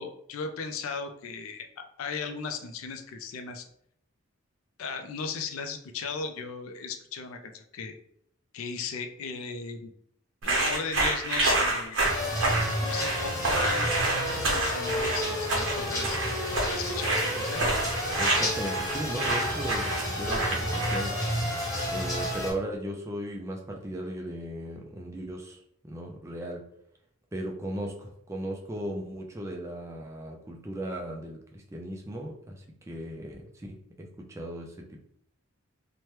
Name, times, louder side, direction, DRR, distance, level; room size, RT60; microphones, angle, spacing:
voice 1, 0.0-3.6 4.8-8.0 8.5-9.9 10.4-12.1 12.8-13.9 14.5-16.3 16.7-17.7, left 5 dB, 85° left, 7 dB, 0.4 m, -36 dB
sound 1, 10.4-21.2, right 2 dB, 65° right, 0.7 m, -28 dB
sound 2, 12.0-22.5, equal, 15° left, 0.8 m, -31 dB
voice 2, 18.2-21.2 21.9-25.6 25.8-26.7 27.3-35.1, right 1 dB, 15° right, 0 dB, 0.3 m, -37 dB
2.8 x 2.2 x 3.1 m, 0.70 s
head